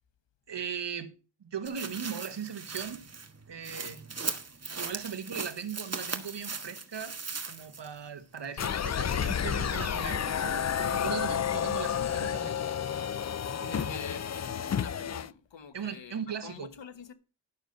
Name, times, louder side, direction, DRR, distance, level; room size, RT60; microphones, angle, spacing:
voice 1, 0.5-1.1 1.4-3.0 3.5-4.0 4.7-7.2 7.5-12.5 13.6-14.1 15.7-16.7, right 7 dB, 75° right, 1.4 m, -38 dB
Hand digging dirt leaves crunch, 1.6-8.0 8.4-8.5, right 4 dB, 35° right, 1.5 m, -38 dB
sound 1, 8.6-15.3, left 8 dB, 40° left, 0.5 m, -31 dB
voice 2, 13.6-17.1, left 7 dB, 85° left, 1.3 m, -46 dB
11.5 x 6.7 x 5.2 m
wide cardioid pair, 75°, 43 cm